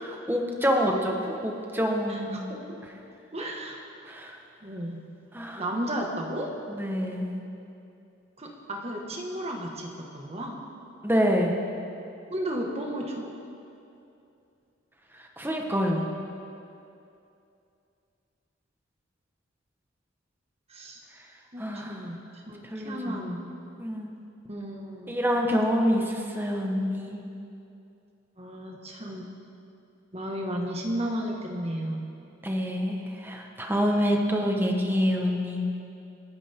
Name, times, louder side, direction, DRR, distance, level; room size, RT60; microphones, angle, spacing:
voice 1, 0.3-2.5 4.0-4.4 5.3-5.6 6.7-7.3 11.0-11.6 15.2-16.1 21.6-22.0 22.6-23.2 23.8-24.1 25.1-27.2 32.4-35.7, equal, 10° right, 1 dB, 1.4 m, -26 dB
voice 2, 2.1-2.8 3.3-3.8 4.6-5.0 5.6-6.5 8.4-10.6 12.3-13.3 20.7-21.0 21.5-23.5 24.5-25.2 28.4-29.3 30.1-32.0, equal, 30° right, 0 dB, 1.8 m, -34 dB
28.5 x 10.5 x 3.8 m, 2.7 s
head